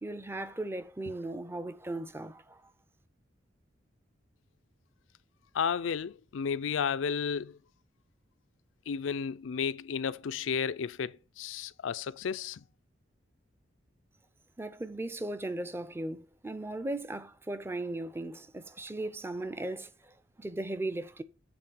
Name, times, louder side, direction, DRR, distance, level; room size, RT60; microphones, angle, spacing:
voice 1, 0.0-2.6 14.6-21.2, right 2 dB, 10° right, 0.5 m, -37 dB
voice 2, 5.5-7.6 8.9-12.6, left 6 dB, 80° left, 0.4 m, -33 dB
7.9 x 3.6 x 6.1 m
head